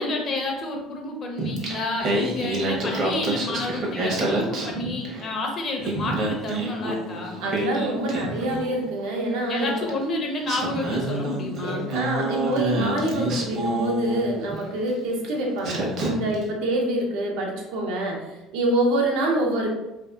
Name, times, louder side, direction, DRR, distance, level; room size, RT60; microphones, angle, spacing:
voice 1, 0.0-7.4 9.5-11.9, left 2 dB, 40° left, 1 dB, 0.6 m, -30 dB
Singing, 1.4-5.3 5.6-8.9 9.9-10.0 10.4-14.6 15.2-15.4 15.6-16.4, right 1 dB, 55° right, 0.7 m, -28 dB
voice 2, 7.4-9.9 11.6-19.7, right 1 dB, 90° right, -1 dB, 0.7 m, -26 dB
2.6 x 2.4 x 2.3 m, 0.95 s
cardioid pair, 120°, 0 cm